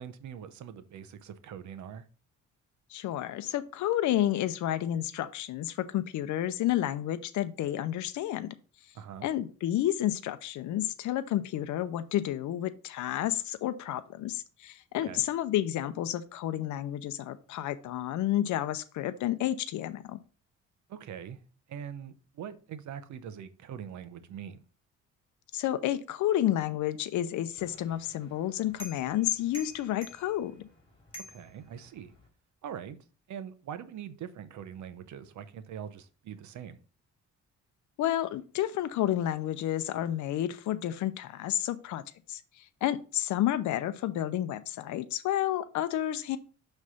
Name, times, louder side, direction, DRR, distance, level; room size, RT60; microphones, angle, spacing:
voice 1, 0.0-2.0 8.9-9.3 15.0-15.2 20.9-21.4 21.7-24.7 31.2-32.1 32.6-33.0 33.3-36.8, right 8 dB, 70° right, 0.8 m, -42 dB
voice 2, 2.9-8.5 9.2-20.2 25.5-30.6 38.0-42.0 42.3-46.4, left 12 dB, 70° left, 0.6 m, -30 dB
sound 1, 27.6-32.3, equal, 15° left, 2.4 m, -50 dB
6.1 x 3.3 x 5.5 m
cardioid pair, 90°, 30 cm